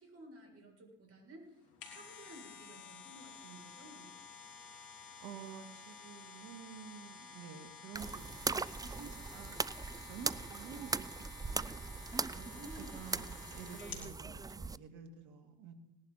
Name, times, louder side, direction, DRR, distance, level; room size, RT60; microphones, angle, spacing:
voice 1, 0.0-4.1 12.3-13.1, right 1 dB, 50° right, 0 dB, 7.1 m, -54 dB
sound 1, 1.5-14.1 14.6-14.7, left 6 dB, 80° left, 3.3 m, -52 dB
voice 2, 5.2-11.8 12.8-15.7, right 7 dB, 70° right, 6 dB, 2.2 m, -51 dB
sound 2, 7.9-14.8, right 4 dB, 10° right, 0.4 m, -40 dB
19.5 x 11.0 x 4.3 m, 0.83 s
hypercardioid pair, 60°, 31 cm